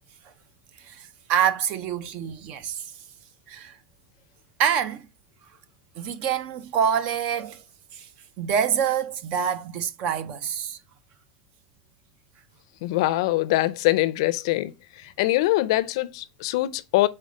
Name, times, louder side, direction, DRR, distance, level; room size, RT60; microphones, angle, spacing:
voice 1, 0.8-2.9 3.5-3.8 4.6-5.0 6.0-7.6 7.9-8.1 8.4-10.8, right 8 dB, 40° right, 0.7 m, -26 dB
voice 2, 12.8-17.1, left 17 dB, 65° left, 0.5 m, -23 dB
5.3 x 4.2 x 5.1 m
supercardioid pair, 160°, 3 cm